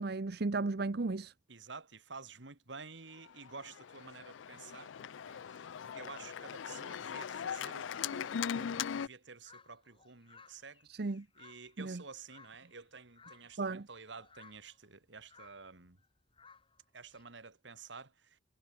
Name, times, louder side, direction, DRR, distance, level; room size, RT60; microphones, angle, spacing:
voice 1, 0.0-1.3 10.9-11.2 11.8-12.0 13.6-13.9, right 3 dB, 55° right, 0.7 m, -35 dB
voice 2, 1.5-10.9 11.4-16.0 16.9-18.4, right 4 dB, 75° right, 2.2 m, -51 dB
Organ, 3.3-9.1, left 7 dB, 90° left, 0.4 m, -40 dB
sound 1, 9.4-12.9 13.1-13.7 14.1-17.2, left 5 dB, 30° left, 5.9 m, -61 dB
head